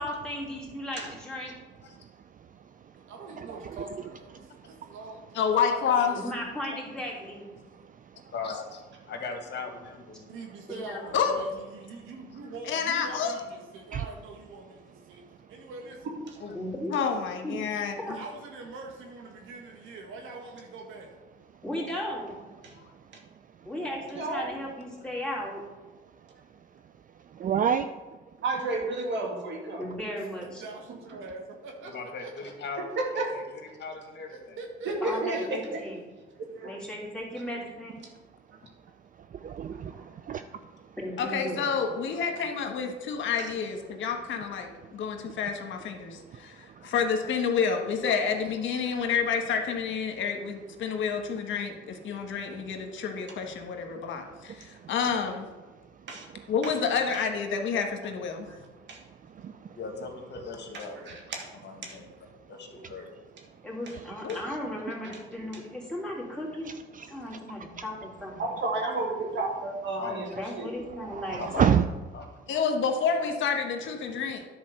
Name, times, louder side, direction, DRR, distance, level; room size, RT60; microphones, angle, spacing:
voice 1, 0.0-1.5 6.2-7.5 10.7-11.0 16.5-16.9 17.4-17.7 18.0-18.2 21.6-22.3 23.6-25.6 29.8-30.6 35.0-36.0 36.6-38.0 41.0-41.6 63.6-66.7 67.1-68.3 70.4-71.8, left 1 dB, 5° left, -4 dB, 3.2 m, -36 dB
voice 2, 1.9-4.0 4.3-5.0 7.6-8.3 10.2-10.3 13.9-14.1 15.1-15.5 21.5-21.6 22.7-23.7 26.0-27.9 28.3-28.4 39.1-41.0 44.8-45.4 46.0-46.9 52.1-53.0 53.9-54.9 55.7-56.5 58.8-59.8 62.3-62.5 62.8-62.9 63.5-63.6 63.9-64.6 66.6-67.8 70.9-71.9, right 8 dB, 45° right, 10 dB, 0.4 m, -34 dB
voice 3, 3.0-6.2 10.3-16.1 18.1-21.1 30.5-32.7 34.3-35.5, right 3 dB, 90° right, 2 dB, 1.8 m, -44 dB
voice 4, 5.4-6.1 11.1-11.4 12.7-13.3 16.9-18.0 41.2-55.5 56.5-58.5 64.2-64.4 72.5-74.4, left 6 dB, 75° left, 4 dB, 1.3 m, -29 dB
voice 5, 8.3-10.3 11.0-11.2 16.4-16.5 31.8-32.9 33.1-34.6 47.2-47.3 48.0-48.1 59.7-61.2 61.6-62.1 62.5-63.1 70.0-70.2 71.4-71.6 72.1-72.2, left 4 dB, 60° left, 3 dB, 1.8 m, -39 dB
voice 6, 24.2-24.5 28.4-29.8 32.8-33.3 34.9-35.8 36.4-36.8 39.8-40.0 43.4-43.5 48.9-49.0 56.1-56.3 56.6-56.7 57.1-57.2 58.9-59.0 61.1-61.5 61.8-62.0 68.6-70.3 70.5-70.7, right 2 dB, 65° right, 0 dB, 2.3 m, -32 dB
10.5 x 4.4 x 6.6 m, 1.3 s
cardioid pair, 90°, 20 cm